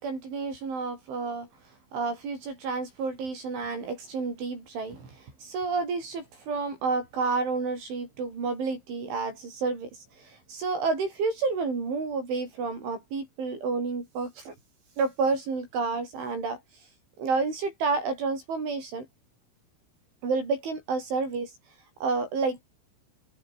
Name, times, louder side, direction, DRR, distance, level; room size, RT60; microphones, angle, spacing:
voice 1, 0.0-1.5 1.9-9.9 10.2-14.6 15.0-16.6 17.2-19.1 20.2-21.5 22.0-22.6, right 4 dB, 65° right, 10.0 m, -30 dB
open air
omnidirectional pair, 6.0 m